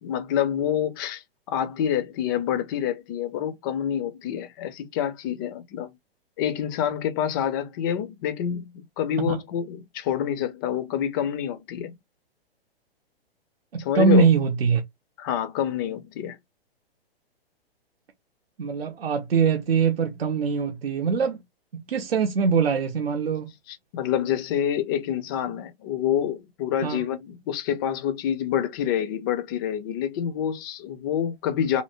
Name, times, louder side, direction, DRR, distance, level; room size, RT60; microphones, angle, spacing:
voice 1, 0.0-5.9 6.4-11.9 13.8-14.3 15.2-16.4 23.9-31.8, left 9 dB, 20° left, 0.4 m, -27 dB
voice 2, 13.7-14.8 18.6-21.4 21.7-23.5 26.8-27.0, right 5 dB, 70° right, 0.7 m, -23 dB
2.8 x 2.6 x 2.8 m
figure-of-eight pair, 115°, 31 cm